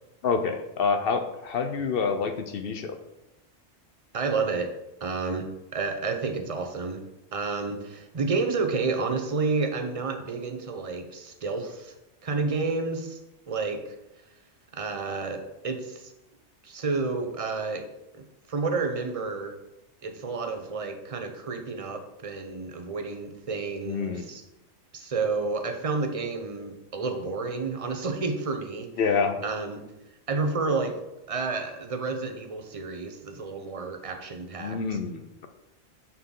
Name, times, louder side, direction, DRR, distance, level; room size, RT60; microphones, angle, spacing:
voice 1, 0.2-3.0 23.8-24.3 29.0-29.4 34.6-35.5, left 5 dB, 60° left, 7 dB, 0.8 m, -27 dB
voice 2, 4.1-7.0 7.3-11.9 12.2-13.2 13.5-14.0 14.7-16.1 16.6-17.8 18.2-19.5 20.0-24.4 24.9-28.9 29.4-29.8 30.3-31.0 31.3-34.8, right 4 dB, 35° right, 5 dB, 0.8 m, -30 dB
9.5 x 4.4 x 3.8 m, 0.93 s
omnidirectional pair, 1.2 m